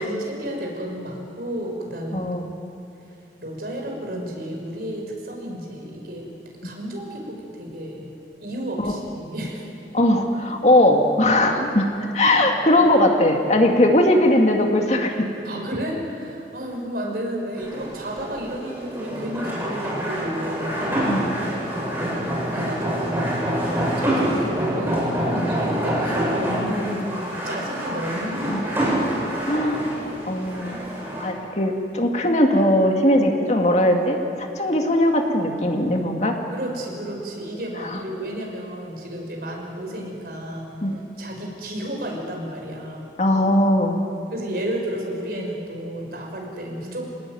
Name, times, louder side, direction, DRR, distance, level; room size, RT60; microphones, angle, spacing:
voice 1, 0.0-2.3 3.4-6.3 6.6-8.1 8.4-9.6 15.4-20.9 21.9-29.1 36.5-40.7 41.2-43.1 44.3-47.2, equal, 60° right, 0 dB, 6.1 m, -32 dB
voice 2, 2.1-2.5 8.8-8.9 9.9-15.3 21.1-21.3 25.3-25.4 28.5-28.6 29.5-29.8 30.3-30.8 31.2-36.4 37.8-38.0 40.8-41.0 43.2-44.0, left 1 dB, 40° left, 3 dB, 2.3 m, -19 dB
sound 1, 17.5-31.3, right 1 dB, 15° right, 7.4 m, -26 dB
27.0 x 20.0 x 9.4 m, 2.7 s
head